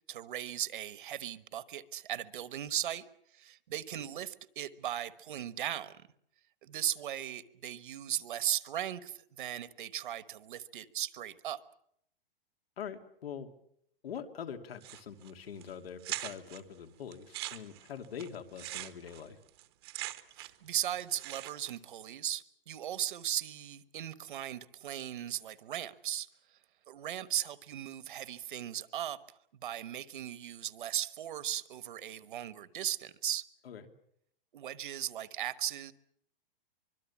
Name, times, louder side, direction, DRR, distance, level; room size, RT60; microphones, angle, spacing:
voice 1, 0.1-3.0 3.3-6.0 6.6-11.6 20.4-26.3 26.9-29.2 29.6-33.4 34.5-35.9, right 11 dB, 60° right, 15 dB, 1.3 m, -37 dB
voice 2, 12.8-13.5 14.0-19.4 33.6-33.9, left 7 dB, 90° left, 6 dB, 2.9 m, -44 dB
sound 1, 14.8-15.3 15.6-15.7 16.0-16.6 17.1-20.7 20.9-21.8, right 17 dB, 25° right, 0.9 m, -42 dB
25.0 x 22.5 x 7.3 m, 0.71 s
hypercardioid pair, 180°, 29 cm